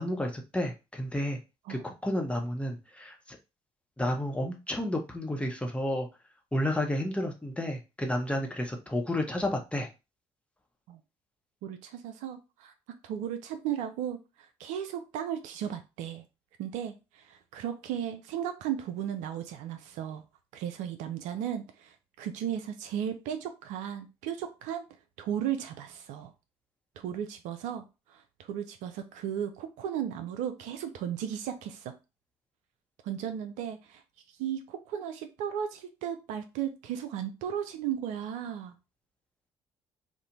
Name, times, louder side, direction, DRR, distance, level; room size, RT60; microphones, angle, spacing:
voice 1, 0.0-1.4 1.7-3.4 4.0-6.1 6.5-9.9, left 1 dB, 10° left, 2 dB, 0.8 m, -31 dB
voice 2, 11.6-12.7 13.0-16.2 16.6-20.2 20.5-24.8 25.2-26.3 27.0-31.9 33.0-34.0 34.4-38.7, right 9 dB, 65° right, 7 dB, 0.4 m, -35 dB
2.5 x 2.1 x 2.9 m, 0.28 s
hypercardioid pair, 50°, 13 cm